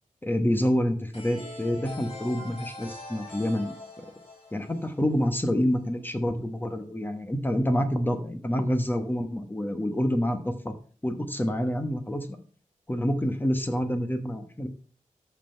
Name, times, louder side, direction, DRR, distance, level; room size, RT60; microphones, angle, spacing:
voice 1, 0.2-3.7 4.5-10.7 11.0-12.4 12.9-14.7, equal, 15° left, 7 dB, 1.3 m, -27 dB
sound 1, 1.1-5.8, left 2 dB, 45° left, 5.0 m, -43 dB
13.5 x 5.8 x 4.5 m, 0.42 s
wide cardioid pair, 120°, 14 cm